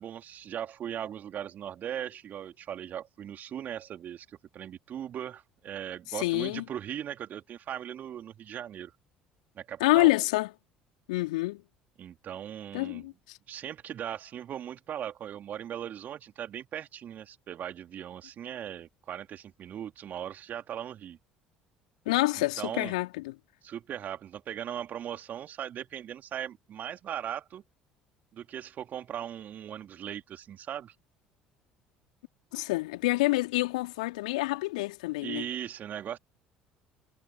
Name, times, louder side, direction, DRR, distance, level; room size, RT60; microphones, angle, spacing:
voice 1, 0.0-8.9 9.5-10.1 12.0-13.1 13.5-21.2 22.6-22.9 23.6-27.6 28.3-30.9 35.2-36.2, right 10 dB, 45° right, 3.1 m, -39 dB
voice 2, 6.1-6.6 9.8-10.5 11.1-11.6 12.7-13.4 22.1-23.3 32.5-35.5, left 21 dB, 70° left, 3.4 m, -27 dB
figure-of-eight pair, 60°, 4 cm